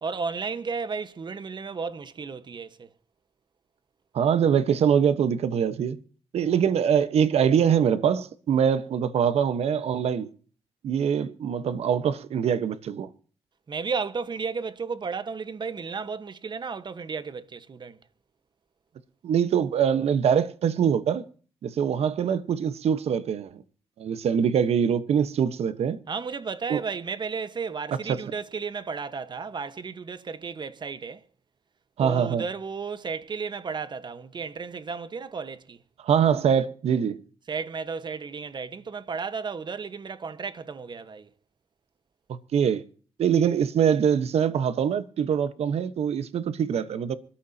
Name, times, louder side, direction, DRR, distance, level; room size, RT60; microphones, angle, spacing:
voice 1, 0.0-2.9 6.5-6.6 13.7-18.0 26.1-31.2 32.0-35.8 37.5-41.3, right 5 dB, 45° right, 1.3 m, -33 dB
voice 2, 4.1-6.0 6.3-10.3 10.8-13.1 19.2-21.2 21.6-23.6 24.0-26.0 26.7-26.8 28.1-28.2 32.0-32.4 36.0-37.2 42.5-42.8 43.2-47.2, right 8 dB, 80° right, 1.2 m, -23 dB
24.5 x 13.0 x 2.9 m
cardioid pair, 85°, 11 cm